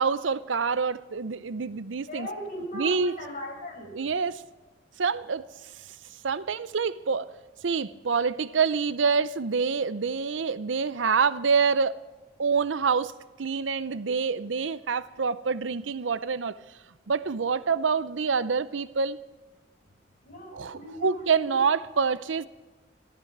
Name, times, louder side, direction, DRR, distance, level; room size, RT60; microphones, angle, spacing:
voice 1, 0.0-2.3 2.7-3.1 3.9-4.4 5.0-5.4 6.2-7.3 7.6-12.0 12.4-13.1 13.4-16.6 17.1-19.2 20.5-22.5, right 5 dB, 90° right, 0.6 m, -26 dB
voice 2, 2.1-3.9 20.2-21.6, equal, 45° left, 5.6 m, -38 dB
13.5 x 13.0 x 6.0 m
head